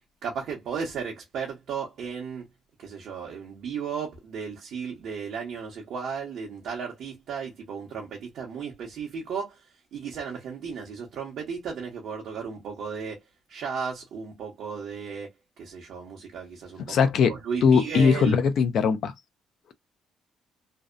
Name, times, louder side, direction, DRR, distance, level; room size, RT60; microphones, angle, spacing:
voice 1, 0.2-2.5 2.8-9.6 9.9-13.2 13.5-15.3 15.6-17.0 17.3-18.4, right 6 dB, 75° right, 0.7 m, -34 dB
voice 2, 16.9-17.3 17.6-19.1, left 6 dB, 70° left, 0.4 m, -20 dB
2.6 x 2.1 x 2.4 m
cardioid pair, 90°, 0 cm